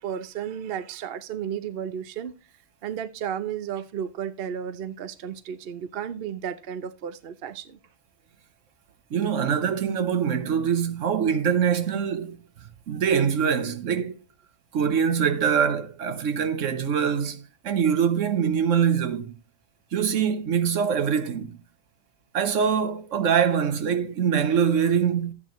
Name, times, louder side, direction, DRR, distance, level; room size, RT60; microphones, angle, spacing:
voice 1, 0.0-2.3 2.8-7.8, right 8 dB, 55° right, 0.8 m, -33 dB
voice 2, 9.1-12.4 12.9-14.1 14.7-19.3 19.9-21.5 22.3-25.3, right 7 dB, 70° right, 1.2 m, -24 dB
12.5 x 8.5 x 3.0 m
omnidirectional pair, 1.4 m